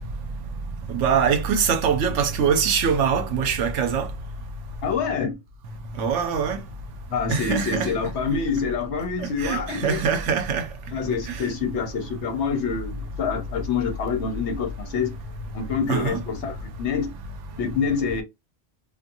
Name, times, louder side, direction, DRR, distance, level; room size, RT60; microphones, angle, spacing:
voice 1, 0.9-4.1 6.0-6.6 7.3-7.9 9.2-10.7 11.3-11.4 15.9-16.2, right 6 dB, 75° right, 0.9 m, -23 dB
voice 2, 4.8-5.4 7.1-10.1 10.9-15.2 15.5-17.1 17.5-18.2, left 6 dB, 65° left, 1.0 m, -26 dB
2.7 x 2.4 x 2.6 m
omnidirectional pair, 1.3 m